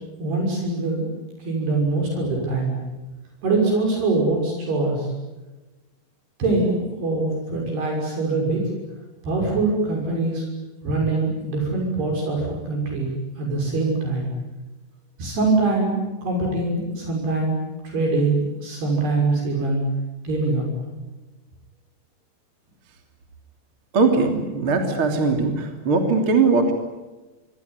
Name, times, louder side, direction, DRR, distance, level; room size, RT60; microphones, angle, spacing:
voice 1, 0.2-1.1 1.4-2.8 3.4-5.1 6.4-8.6 9.2-10.4 10.8-13.1 13.4-14.3 15.2-16.0 16.2-17.6 17.8-19.9 20.2-20.6, right 3 dB, 60° right, 0 dB, 8.1 m, -23 dB
voice 2, 23.9-26.7, right 4 dB, 30° right, 4 dB, 3.4 m, -20 dB
26.5 x 23.0 x 9.7 m, 1.1 s
omnidirectional pair, 5.2 m